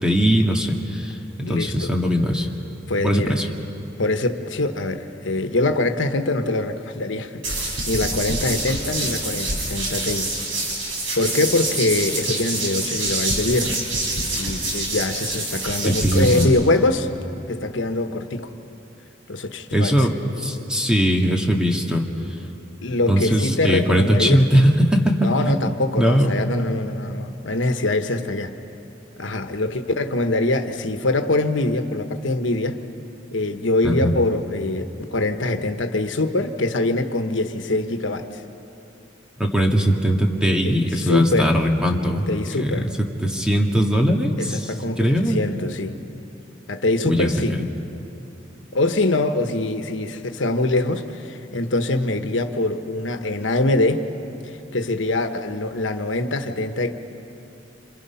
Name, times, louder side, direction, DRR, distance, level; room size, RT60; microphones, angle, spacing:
voice 1, 0.0-2.5 3.0-3.5 15.8-16.6 19.7-22.1 23.1-25.5 26.0-26.4 33.8-34.1 39.4-42.3 42.6-44.7 45.0-45.4 47.0-47.6, equal, 5° right, 1 dB, 1.8 m, -20 dB
voice 2, 1.4-2.0 2.9-3.4 4.0-7.4 7.9-10.3 11.2-13.8 14.3-17.1 17.5-18.5 19.3-20.1 22.8-24.5 25.2-28.5 29.2-32.8 33.3-38.4 40.6-41.5 42.3-42.9 44.4-46.0 46.7-47.6 48.7-54.1 54.4-56.9, left 2 dB, 90° left, 7 dB, 1.2 m, -23 dB
sound 1, 7.4-16.4, right 2 dB, 90° right, 5.3 m, -26 dB
27.5 x 27.0 x 5.7 m, 3.0 s
head